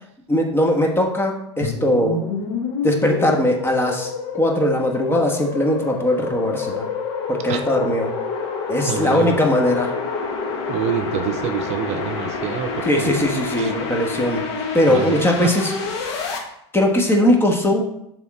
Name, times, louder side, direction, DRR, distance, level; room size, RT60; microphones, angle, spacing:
voice 1, 0.3-2.2 2.8-6.8 7.3-8.1 8.7-9.9 12.8-14.4 14.7-15.7 16.7-17.8, left 1 dB, 15° left, 2 dB, 1.3 m, -20 dB
sound 1, 1.6-16.4, left 4 dB, 70° left, 1.4 m, -28 dB
voice 2, 8.8-9.5 10.7-13.1 13.6-13.7 14.9-15.6, right 9 dB, 50° right, 6 dB, 0.7 m, -26 dB
6.9 x 3.6 x 4.8 m, 0.77 s
hypercardioid pair, 95°, 14 cm